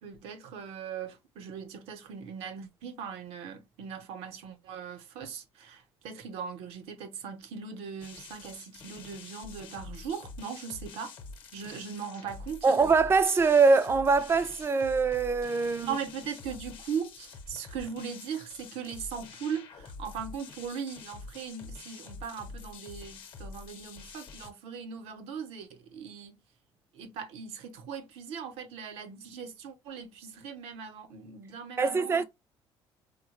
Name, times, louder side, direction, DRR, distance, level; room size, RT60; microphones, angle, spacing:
voice 1, 0.0-11.1 11.5-12.8 15.8-26.4 26.9-32.2, right 6 dB, 80° right, 0.8 m, -39 dB
sound 1, 8.0-24.5, left 4 dB, 55° left, 0.8 m, -46 dB
voice 2, 12.6-16.0 31.8-32.2, right 4 dB, 25° right, 0.4 m, -23 dB
3.5 x 2.2 x 3.0 m
cardioid pair, 110°, 10 cm